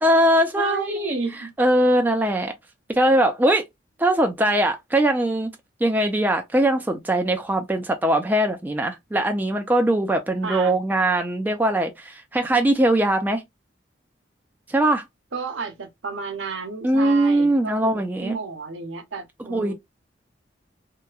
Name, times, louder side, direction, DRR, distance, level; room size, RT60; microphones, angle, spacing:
voice 1, 0.0-1.2 1.6-2.5 2.9-3.6 4.0-5.5 5.8-13.4 14.7-15.0 16.8-18.3 19.5-19.7, right 1 dB, 10° right, 0.3 m, -21 dB
voice 2, 0.5-1.5 10.4-10.7 15.3-17.9 18.2-19.7, right 4 dB, 85° right, 0.7 m, -31 dB
2.8 x 2.2 x 2.3 m
head